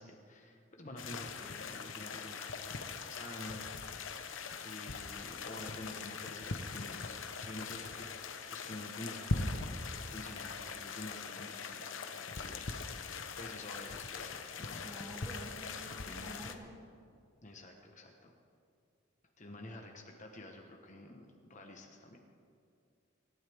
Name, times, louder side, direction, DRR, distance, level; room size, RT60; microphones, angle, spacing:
voice 1, 0.0-4.2 4.6-8.1 8.5-9.8 10.1-14.8 15.9-16.4 17.4-18.3 19.4-22.2, left 1 dB, 40° left, 2 dB, 1.3 m, -49 dB
sound 1, 1.0-16.5, left 4 dB, 70° left, 1.0 m, -41 dB
voice 2, 14.8-16.7, equal, 15° right, -3 dB, 3.1 m, -49 dB
26.0 x 12.5 x 3.6 m, 2.4 s
head